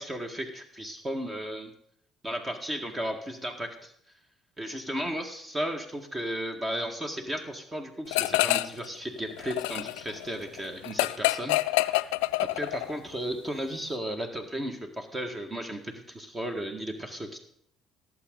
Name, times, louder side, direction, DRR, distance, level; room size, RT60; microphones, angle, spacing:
voice 1, 0.0-1.7 2.2-3.9 4.6-12.2 12.4-17.4, equal, 25° right, 5 dB, 1.8 m, -35 dB
sound 1, 8.1-8.9 9.2-13.0, left 20 dB, 80° left, 0.3 m, -27 dB
18.0 x 7.7 x 4.0 m, 0.68 s
hypercardioid pair, 55°, 0 cm